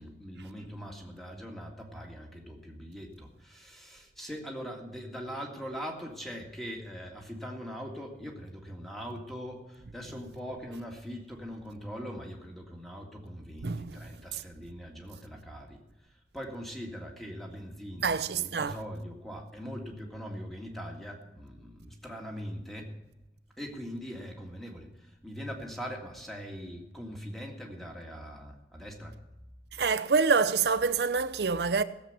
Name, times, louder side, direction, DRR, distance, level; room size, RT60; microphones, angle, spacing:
voice 1, 0.0-15.8 16.3-22.9 23.6-29.2, equal, ahead, 1.9 m, -41 dB
voice 2, 13.6-14.4 18.0-18.8 29.7-31.8, right 5 dB, 70° right, 0.6 m, -27 dB
16.5 x 7.6 x 6.6 m
head